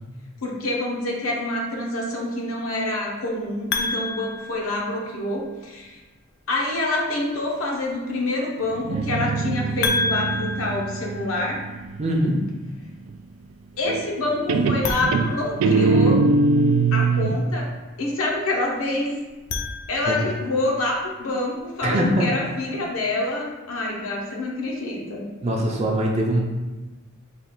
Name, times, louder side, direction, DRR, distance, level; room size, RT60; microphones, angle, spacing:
voice 1, 0.4-6.0 6.5-11.6 13.8-16.2 16.9-17.7 18.0-19.1 19.9-25.2, left 2 dB, 85° left, -2 dB, 0.8 m, -27 dB
sound 1, 3.7-5.4 9.8-11.9 14.7-16.3 19.3-20.5, left 3 dB, 50° left, 0.4 m, -30 dB
Guitar, 8.7-12.3 13.9-14.2 14.5-17.4, right 3 dB, 85° right, 0.3 m, -22 dB
voice 2, 12.0-12.4 20.1-20.2 21.8-22.3 25.4-26.4, right 1 dB, 30° right, -1 dB, 0.5 m, -22 dB
3.3 x 2.4 x 4.4 m, 1.2 s
head